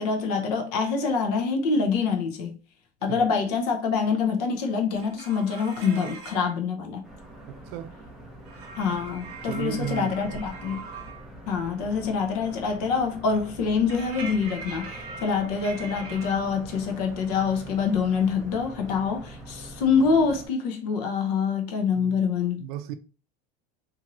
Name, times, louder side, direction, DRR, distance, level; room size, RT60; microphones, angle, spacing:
voice 1, 0.0-2.6 3.0-7.0 8.8-10.9 11.5-22.6, left 5 dB, 75° left, 0.7 m, -25 dB
sound 1, 4.9-6.5 8.5-11.3 13.9-16.3, right 4 dB, 50° right, 0.8 m, -41 dB
sound 2, 7.0-20.5, right 1 dB, ahead, 0.4 m, -44 dB
voice 2, 7.5-7.9 9.4-10.4 22.0-22.2 22.5-22.9, right 11 dB, 70° right, 0.4 m, -35 dB
2.6 x 2.6 x 2.9 m
cardioid pair, 175°, 20 cm